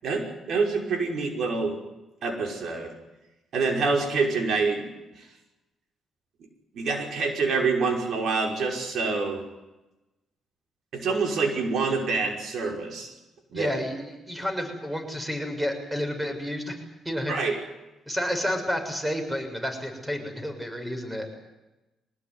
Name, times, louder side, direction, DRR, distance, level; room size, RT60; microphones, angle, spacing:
voice 1, 0.0-1.8 2.2-2.9 3.5-4.9 5.2-5.3 6.7-9.4 10.9-13.1 13.5-13.7 17.3-17.6, right 4 dB, 65° right, 3 dB, 5.6 m, -26 dB
voice 2, 13.5-16.8 17.0-17.3 18.1-21.5, equal, 10° right, 6 dB, 6.8 m, -30 dB
24.0 x 19.5 x 9.7 m, 1.0 s
cardioid pair, 90°, 0 cm